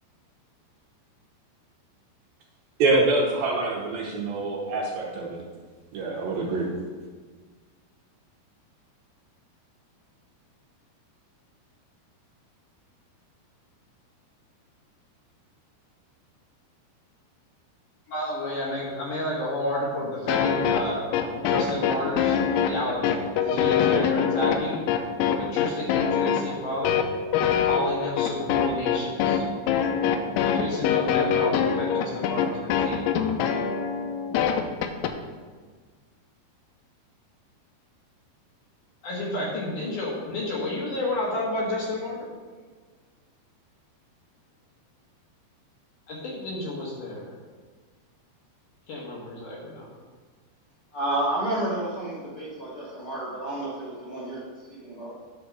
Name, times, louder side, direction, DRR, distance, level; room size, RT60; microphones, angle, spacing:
voice 1, 2.8-5.4 5.9-6.7, right 2 dB, 70° right, -2 dB, 2.4 m, -25 dB
voice 2, 18.1-22.4 22.7-24.8 25.2-27.0 27.6-29.4 30.4-33.0 39.0-42.3 46.1-47.3 48.9-49.9, left 1 dB, 60° left, -5 dB, 2.5 m, -31 dB
sound 1, 20.3-35.1, left 8 dB, 90° left, 2.1 m, -24 dB
voice 3, 50.9-54.4 54.7-55.2, right 1 dB, 45° left, -9 dB, 2.0 m, -30 dB
10.5 x 4.2 x 6.1 m, 1.5 s
omnidirectional pair, 4.9 m